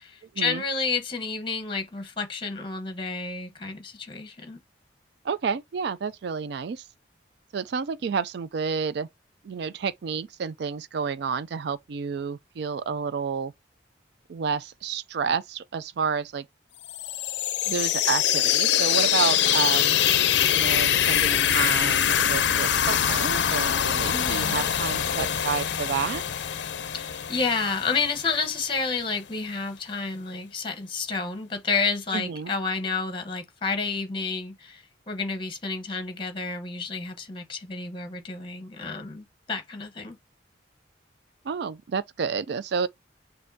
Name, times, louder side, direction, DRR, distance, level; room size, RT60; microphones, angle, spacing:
voice 1, 0.0-4.6 24.1-24.7 26.9-40.2, left 4 dB, 25° left, 0.9 m, -30 dB
voice 2, 5.2-6.9 7.5-9.1 9.4-13.5 14.3-16.5 17.7-20.0 20.5-26.2 32.1-32.5 41.4-42.9, right 6 dB, 60° right, 0.3 m, -30 dB
sound 1, 16.9-28.6, left 10 dB, 65° left, 0.5 m, -24 dB
6.3 x 2.6 x 2.7 m
head